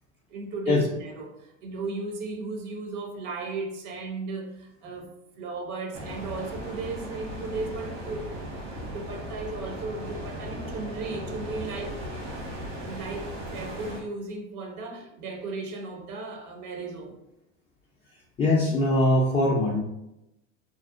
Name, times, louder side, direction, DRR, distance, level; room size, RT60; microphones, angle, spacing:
voice 1, 0.3-5.1 5.4-8.4 8.9-12.0 12.8-17.2, right 3 dB, 50° right, 0.5 m, -36 dB
sound 1, 5.9-14.0, equal, 80° right, 1.1 m, -37 dB
voice 2, 18.4-19.8, left 1 dB, 20° left, 0.3 m, -22 dB
2.5 x 2.0 x 2.4 m
hypercardioid pair, 90°, 38 cm